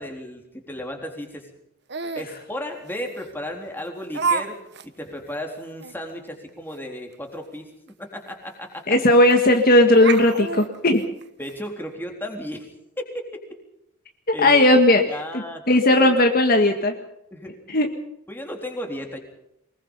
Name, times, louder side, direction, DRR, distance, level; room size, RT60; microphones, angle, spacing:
voice 1, 0.0-1.5 2.2-4.6 5.0-9.0 11.4-12.7 13.0-13.1 13.3-13.4 14.3-14.8 15.1-16.1 17.3-17.6 18.3-19.2, left 1 dB, 10° left, 2 dB, 3.7 m, -34 dB
Laughter, 1.9-2.3 3.2-3.3 4.1-4.5 4.7-4.9 5.3-5.4 5.8-5.9 7.9-8.0 8.3-8.4 9.3-9.6 9.9-11.6, right 5 dB, 50° right, 1.2 m, -27 dB
voice 2, 8.9-11.1 14.4-15.0 15.7-16.9 17.7-17.9, left 1 dB, 45° left, 4 dB, 1.8 m, -16 dB
24.0 x 21.5 x 5.6 m, 0.80 s
head